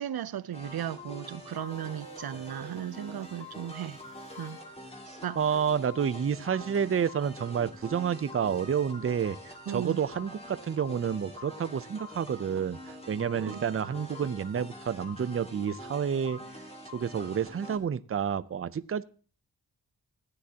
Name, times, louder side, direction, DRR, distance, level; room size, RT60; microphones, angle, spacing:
voice 1, 0.0-4.0 4.4-4.6 5.1-5.4 9.7-10.0 13.4-13.7, right 10 dB, 80° right, 0.6 m, -36 dB
sound 1, 0.5-17.8, left 1 dB, 15° left, 2.3 m, -45 dB
sound 2, 1.4-3.9, right 5 dB, 55° right, 1.2 m, -51 dB
sound 3, 1.5-5.4, left 2 dB, 35° left, 1.5 m, -59 dB
voice 2, 5.4-16.4 16.9-19.0, right 7 dB, 40° right, 0.5 m, -29 dB
15.5 x 9.9 x 2.8 m
wide cardioid pair, 100°, 36 cm